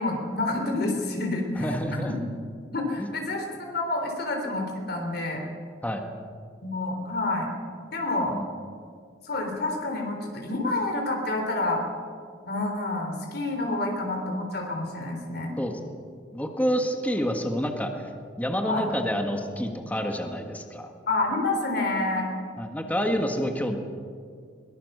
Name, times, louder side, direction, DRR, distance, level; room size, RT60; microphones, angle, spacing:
voice 1, 0.0-1.7 2.7-5.4 6.6-7.5 7.9-8.4 9.2-11.8 12.5-15.5 18.6-18.9 21.1-22.3, left 2 dB, 55° left, 2 dB, 3.6 m, -28 dB
voice 2, 1.6-2.1 3.0-3.1 5.8-6.0 8.3-8.5 15.6-15.7 16.3-17.9 18.4-20.9 22.6-23.8, equal, 10° left, 3 dB, 1.6 m, -28 dB
22.5 x 20.0 x 6.7 m, 2.1 s
head